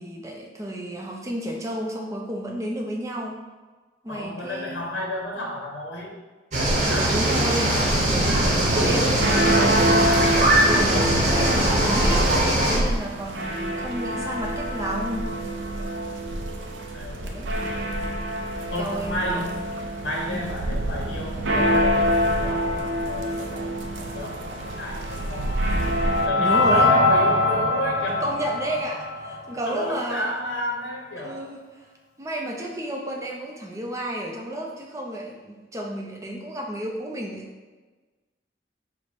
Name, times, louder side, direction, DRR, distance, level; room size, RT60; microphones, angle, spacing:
voice 1, 0.0-3.4 4.0-4.8 6.8-15.3 17.2-17.5 18.8-19.5 20.3-20.4 26.4-26.9 28.2-30.3 31.2-31.9 32.2-37.7, right 1 dB, 15° right, 0 dB, 0.5 m, -32 dB
voice 2, 4.1-6.1 6.8-7.2 16.9-17.3 18.7-19.6 20.0-25.5 26.2-28.2 29.7-31.5, left 1 dB, 75° left, -1 dB, 0.7 m, -32 dB
sound 1, 6.5-12.8, right 1 dB, 40° right, 0.8 m, -21 dB
sound 2, 7.9-26.3, right 1 dB, 85° right, 0.4 m, -26 dB
sound 3, 24.7-29.8, left 2 dB, 40° left, 0.8 m, -23 dB
4.6 x 2.1 x 4.2 m, 1.3 s
head